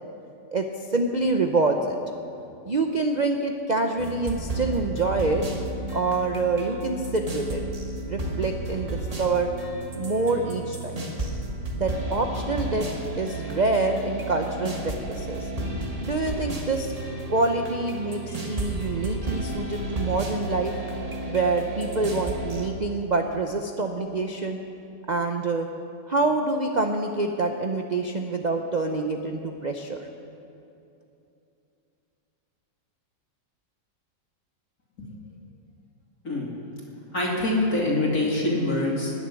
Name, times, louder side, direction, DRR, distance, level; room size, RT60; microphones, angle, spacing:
voice 1, 0.5-2.0 2.7-5.4 5.9-7.6 8.0-9.5 10.0-11.1 11.7-12.9 13.2-15.5 16.0-16.9 17.3-20.7 21.3-24.6 25.1-25.7 26.1-30.1, right 3 dB, 65° right, 4 dB, 0.4 m, -26 dB
sound 1, 4.0-22.7, right 2 dB, 25° right, 1.3 m, -32 dB
voice 2, 37.1-39.1, left 2 dB, 55° left, -4 dB, 3.1 m, -24 dB
19.0 x 7.2 x 9.8 m, 2.7 s
omnidirectional pair, 1.9 m